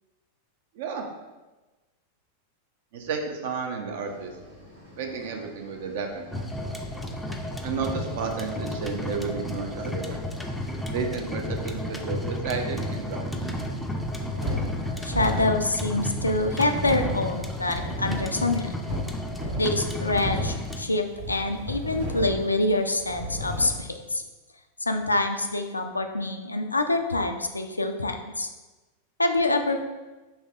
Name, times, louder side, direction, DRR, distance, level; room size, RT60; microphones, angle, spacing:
voice 1, 0.8-1.1 2.9-4.3 5.0-6.7 7.6-10.2 10.9-13.5, right 5 dB, 55° right, 4 dB, 0.5 m, -32 dB
sound 1, 4.0-15.0, equal, 85° right, 1.1 m, -49 dB
sound 2, 6.3-20.8, left 1 dB, 5° left, 0.4 m, -32 dB
sound 3, 13.9-23.9, equal, 70° right, 1.4 m, -34 dB
voice 2, 15.0-18.7 19.6-24.2 24.8-28.5 29.2-29.8, left 2 dB, 80° left, 6 dB, 0.3 m, -26 dB
5.4 x 3.2 x 2.4 m, 1.2 s
figure-of-eight pair, 90°, 0 cm